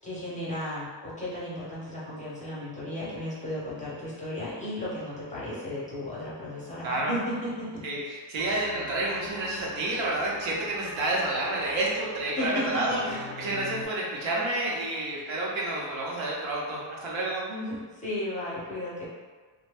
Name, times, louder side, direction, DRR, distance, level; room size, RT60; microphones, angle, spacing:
voice 1, 0.0-7.8 12.4-13.2 17.5-19.0, left 1 dB, 15° left, -9 dB, 0.5 m, -34 dB
voice 2, 7.8-17.5, right 2 dB, 75° right, -4 dB, 0.9 m, -29 dB
sound 1, 8.4-13.8, left 2 dB, 60° left, 0.5 m, -42 dB
2.6 x 2.1 x 3.3 m, 1.5 s
cardioid pair, 160°, 46 cm